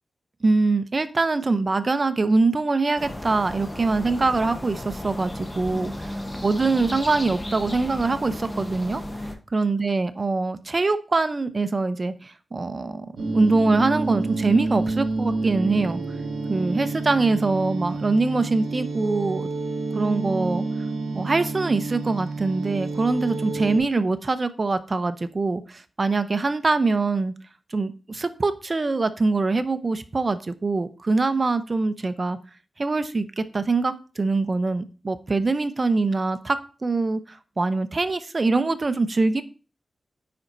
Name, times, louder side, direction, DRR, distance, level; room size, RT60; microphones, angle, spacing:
voice 1, 0.4-9.0 9.5-13.1 13.3-16.0 16.5-19.5 19.9-20.6 21.1-27.3 27.7-32.4 32.8-39.4, right 3 dB, 40° right, 11 dB, 0.6 m, -23 dB
sound 1, 3.0-9.4, left 1 dB, 20° left, 1.0 m, -34 dB
sound 2, 13.2-23.8, right 3 dB, 90° right, 1.0 m, -29 dB
9.5 x 4.1 x 2.6 m, 0.36 s
wide cardioid pair, 80°, 0 cm